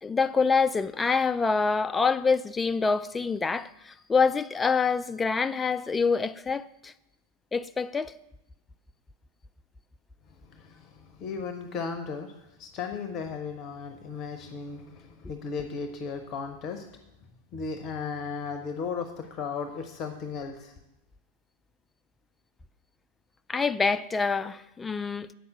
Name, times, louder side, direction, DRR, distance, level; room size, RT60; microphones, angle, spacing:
voice 1, 0.0-6.9 7.5-8.1 23.5-25.3, left 5 dB, 15° left, 0.3 m, -26 dB
voice 2, 10.4-16.9 17.5-20.7, left 5 dB, 35° left, 0.8 m, -36 dB
8.1 x 5.7 x 7.8 m
figure-of-eight pair, 90°, 0 cm